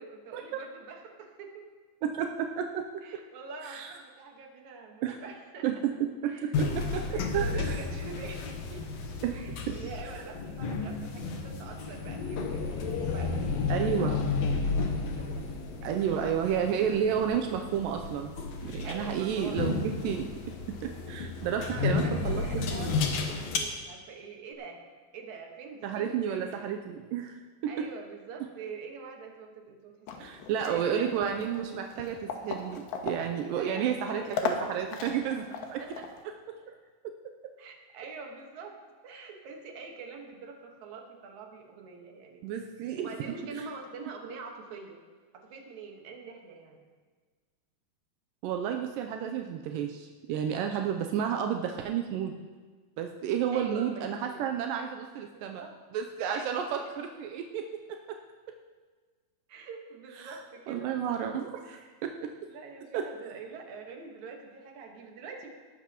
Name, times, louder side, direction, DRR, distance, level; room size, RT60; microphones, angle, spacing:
voice 1, 0.0-1.7 3.0-5.7 6.3-6.5 7.0-9.0 9.3-12.6 13.0-14.2 14.5-14.8 15.1-15.4 15.8-17.1 18.8-19.7 21.2-24.8 25.1-26.7 27.7-32.0 33.6-34.3 35.8-36.1 37.6-38.8 39.0-42.6 43.0-45.0 45.3-46.8 53.5-54.4 55.3-55.8 56.3-56.9 57.2-57.3 59.5-60.9 61.6-61.9 62.5-65.5, right 4 dB, 60° right, 1 dB, 2.5 m, -45 dB
voice 2, 2.0-3.2 3.6-3.9 5.0-5.2 5.6-7.8 9.2-9.4 9.7-9.8 13.7-14.2 15.8-18.3 18.6-20.4 20.7-22.7 25.8-27.7 30.2-35.8 36.5-36.6 42.4-43.1 48.4-52.4 53.0-55.6 55.9-58.2 60.2-60.4 60.7-62.5 62.9-63.1, right 8 dB, 85° right, 4 dB, 2.1 m, -31 dB
sound 1, 6.5-23.6, left 4 dB, 65° left, 1.7 m, -32 dB
sound 2, 30.1-36.2, left 5 dB, 85° left, 3.1 m, -38 dB
18.5 x 12.0 x 3.0 m, 1.4 s
omnidirectional pair, 4.4 m